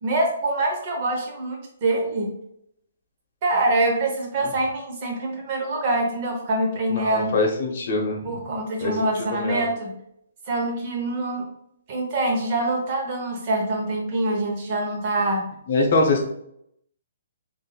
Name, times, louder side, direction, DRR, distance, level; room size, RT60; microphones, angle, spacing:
voice 1, 0.0-2.3 3.4-7.4 8.2-9.9 10.5-11.5 11.9-15.5, right 2 dB, 35° right, 0 dB, 0.9 m, -25 dB
voice 2, 6.9-8.2 8.8-8.9 9.3-9.6 15.7-16.2, left 2 dB, 50° left, 2 dB, 0.9 m, -23 dB
3.7 x 2.6 x 2.3 m, 0.74 s
hypercardioid pair, 160°, 0 cm